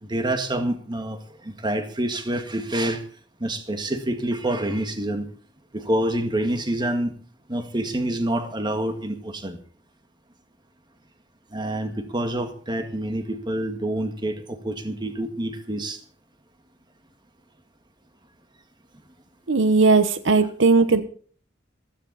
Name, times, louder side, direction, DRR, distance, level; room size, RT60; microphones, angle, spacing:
voice 1, 0.0-3.0 3.4-5.3 5.7-7.1 7.5-9.6 11.5-16.0, right 1 dB, 25° right, 7 dB, 2.0 m, -27 dB
voice 2, 19.5-21.0, right 4 dB, 85° right, 11 dB, 1.2 m, -18 dB
15.5 x 13.5 x 4.2 m, 0.43 s
head